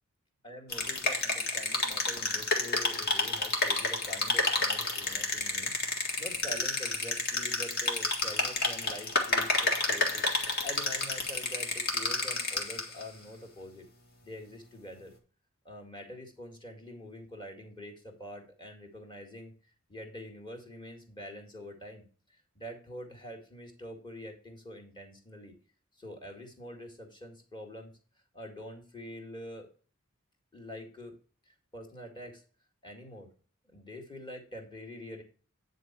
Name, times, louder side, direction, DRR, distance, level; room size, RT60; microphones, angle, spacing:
voice 1, 0.4-5.7 6.2-10.3 10.6-13.9 14.2-15.1 15.6-22.1 22.6-25.5 26.0-27.9 28.3-29.7 30.5-31.1 31.5-32.4 32.8-33.3 33.7-35.2, left 1 dB, 20° left, 2 dB, 2.0 m, -45 dB
sound 1, 0.7-13.0, left 3 dB, 45° left, 2.0 m, -30 dB
9.6 x 4.0 x 5.9 m, 0.38 s
head